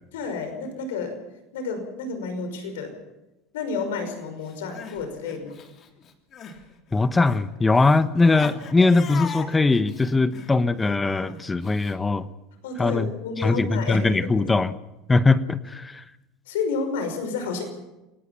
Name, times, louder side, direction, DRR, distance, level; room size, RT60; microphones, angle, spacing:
voice 1, 0.1-1.2 1.5-2.9 3.5-5.6 12.6-14.5 16.5-17.6, left 4 dB, 85° left, 7 dB, 5.8 m, -30 dB
Crying sobbing, 4.5-6.6 6.9-11.9, left 7 dB, 45° left, 3.3 m, -40 dB
voice 2, 6.9-12.3 12.8-13.1 13.4-14.7 15.1-16.0, left 3 dB, 15° left, 13 dB, 1.2 m, -21 dB
27.5 x 18.5 x 5.8 m, 0.98 s
supercardioid pair, 95°, 0 cm